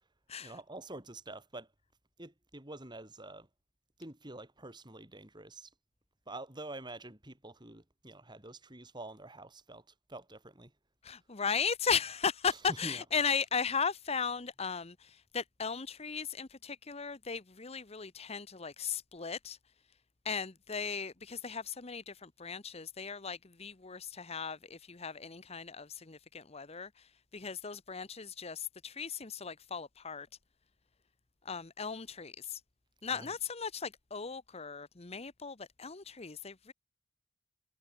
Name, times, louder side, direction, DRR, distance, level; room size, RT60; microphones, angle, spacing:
voice 1, 0.4-1.7 2.2-3.5 4.0-5.7 6.3-10.7 12.4-13.0 33.1-33.4, right 2 dB, 20° right, 3.8 m, -47 dB
voice 2, 11.0-19.6 20.2-26.9 27.3-30.3 31.4-32.6 33.0-36.7, left 6 dB, 30° left, 0.9 m, -36 dB
head